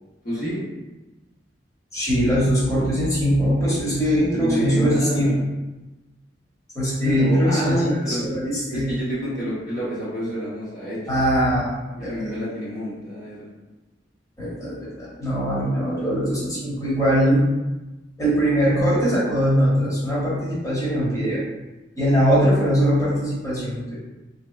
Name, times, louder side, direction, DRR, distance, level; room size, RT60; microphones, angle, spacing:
voice 1, 0.2-0.6 4.4-5.5 7.0-8.4 8.7-11.0 12.0-13.5, equal, 50° left, -9 dB, 0.8 m, -28 dB
voice 2, 1.9-5.4 6.7-8.9 11.1-11.7 12.0-12.1 14.4-17.5 18.2-21.4 22.0-23.9, equal, 20° left, -9 dB, 1.1 m, -21 dB
3.3 x 2.8 x 2.2 m, 1.1 s
head